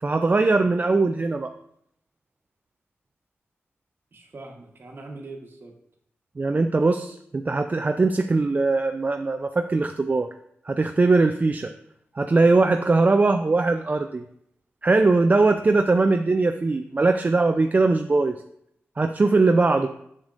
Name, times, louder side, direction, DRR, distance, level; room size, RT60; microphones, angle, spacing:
voice 1, 0.0-1.5 6.4-10.3 10.7-11.7 12.2-14.2 14.8-18.4 19.0-19.9, right 3 dB, 35° right, 7 dB, 0.3 m, -21 dB
voice 2, 4.1-5.7 18.2-18.3 19.6-19.9, right 2 dB, 50° right, 2 dB, 1.2 m, -42 dB
7.1 x 6.5 x 2.5 m, 0.73 s
cardioid pair, 60°, 5 cm